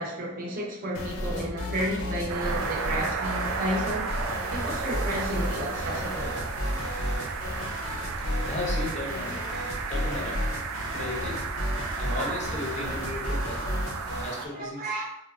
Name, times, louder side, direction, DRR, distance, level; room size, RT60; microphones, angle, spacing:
voice 1, 0.0-4.1 4.5-6.4 10.8-11.0 11.8-12.4 14.2-15.0, right 1 dB, 45° right, -3 dB, 0.6 m, -32 dB
sound 1, 0.9-14.4, left 1 dB, 80° left, 0.5 m, -33 dB
sound 2, 2.3-14.5, right 5 dB, 80° right, 0.3 m, -34 dB
voice 2, 8.4-9.4 9.9-10.5 10.8-11.4 12.0-13.7 14.2-14.8, left 2 dB, 35° left, -2 dB, 0.5 m, -35 dB
3.0 x 2.0 x 2.4 m, 0.81 s
head